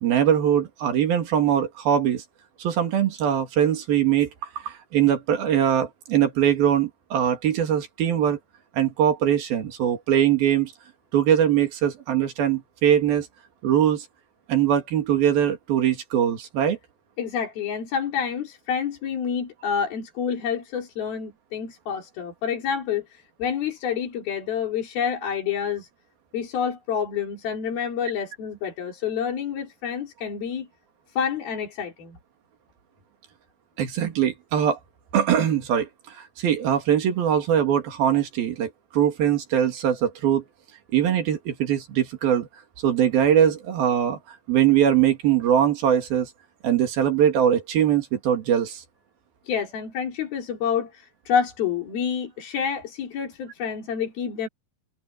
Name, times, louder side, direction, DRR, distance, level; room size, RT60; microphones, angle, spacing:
voice 1, 0.0-2.2 2.6-4.3 4.6-8.4 8.7-10.7 11.1-13.3 13.6-14.1 14.5-16.8 33.8-34.8 35.1-40.4 40.9-42.5 42.8-44.2 44.5-46.3 46.6-48.8, right 9 dB, 80° right, 4.2 m, -22 dB
voice 2, 17.2-25.9 26.3-30.7 31.1-32.2 49.5-54.5, left 7 dB, 90° left, 5.6 m, -28 dB
omnidirectional pair, 4.2 m